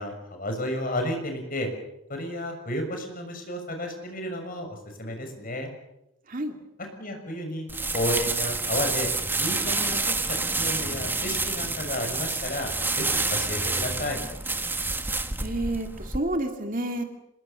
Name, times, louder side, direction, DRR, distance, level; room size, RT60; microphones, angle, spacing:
voice 1, 0.0-1.7 2.1-5.7 7.0-7.7 7.9-9.1 9.4-12.7 13.0-14.2, left 1 dB, 40° left, 4 dB, 6.4 m, -32 dB
sound 1, 7.7-16.2, right 3 dB, 10° right, 1.4 m, -28 dB
voice 2, 15.4-17.0, right 1 dB, 40° right, 5 dB, 2.5 m, -29 dB
26.5 x 21.0 x 7.0 m, 0.87 s
head